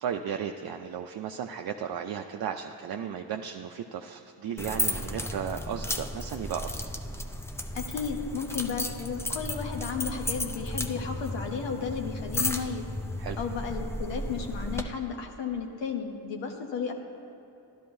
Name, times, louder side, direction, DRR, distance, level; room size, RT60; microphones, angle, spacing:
voice 1, 0.0-6.9 13.2-13.4, right 8 dB, 60° right, 4 dB, 0.5 m, -35 dB
sound 1, 4.6-14.8, left 1 dB, 5° left, 0.5 m, -34 dB
voice 2, 7.7-12.8 13.4-16.9, left 6 dB, 85° left, 2 dB, 0.9 m, -33 dB
12.0 x 11.5 x 2.6 m, 2.9 s
cardioid pair, 60°, 43 cm